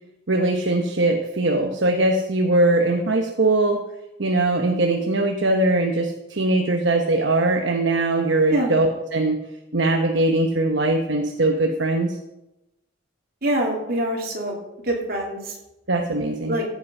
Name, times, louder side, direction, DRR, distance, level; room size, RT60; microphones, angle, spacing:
voice 1, 0.3-3.8 4.2-9.4 9.7-12.2 15.9-16.6, right 2 dB, 65° right, 3 dB, 1.0 m, -21 dB
voice 2, 13.4-14.6 14.8-15.5 16.5-16.6, right 1 dB, 50° right, -1 dB, 2.9 m, -24 dB
14.5 x 8.5 x 5.4 m, 0.95 s
head